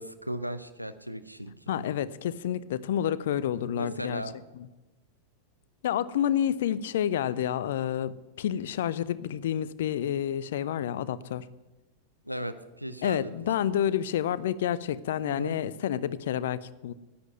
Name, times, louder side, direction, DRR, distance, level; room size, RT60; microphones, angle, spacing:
voice 1, 0.0-1.8 3.7-4.3 12.2-13.3 15.2-15.6, equal, 90° right, 11 dB, 0.8 m, -36 dB
voice 2, 1.7-4.2 5.8-11.5 13.0-16.9, left 10 dB, 60° left, 17 dB, 0.5 m, -29 dB
11.0 x 8.7 x 9.4 m, 1.1 s
figure-of-eight pair, 90°, 0 cm